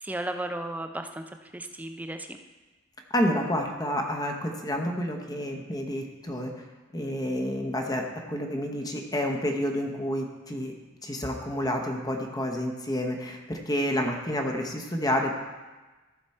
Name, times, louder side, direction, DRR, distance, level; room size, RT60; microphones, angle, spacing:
voice 1, 0.0-1.2 1.5-2.4, right 1 dB, 10° right, 6 dB, 0.4 m, -34 dB
voice 2, 3.1-6.6 6.9-10.7 11.0-15.4, equal, 20° left, 2 dB, 0.9 m, -29 dB
14.5 x 5.9 x 4.3 m, 1.2 s
head